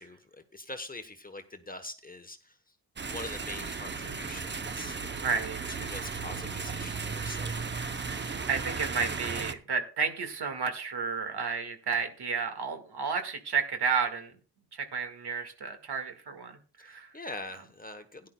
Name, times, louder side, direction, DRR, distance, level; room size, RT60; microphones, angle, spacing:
voice 1, 0.0-2.6 3.1-5.0 5.7-7.6 16.8-18.3, left 2 dB, 20° left, 8 dB, 1.0 m, -43 dB
sound 1, 3.0-9.5, right 5 dB, 25° right, 0.7 m, -35 dB
voice 2, 5.1-5.6 8.5-14.3 14.7-17.1, right 5 dB, 60° right, 6 dB, 1.9 m, -32 dB
17.0 x 10.5 x 2.3 m, 0.37 s
wide cardioid pair, 120°, 43 cm